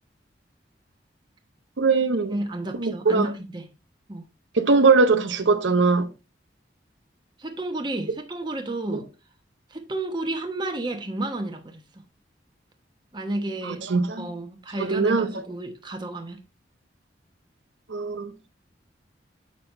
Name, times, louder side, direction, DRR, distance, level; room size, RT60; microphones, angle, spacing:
voice 1, 1.8-2.3 2.8-3.3 4.5-6.1 13.6-14.3 14.8-15.3 17.9-18.3, right 4 dB, 85° right, 0.7 m, -21 dB
voice 2, 2.3-3.7 4.1-4.2 7.4-9.1 9.7-11.8 13.1-13.8 14.2-16.4, right 2 dB, 25° right, 1.0 m, -31 dB
7.5 x 5.9 x 3.2 m
head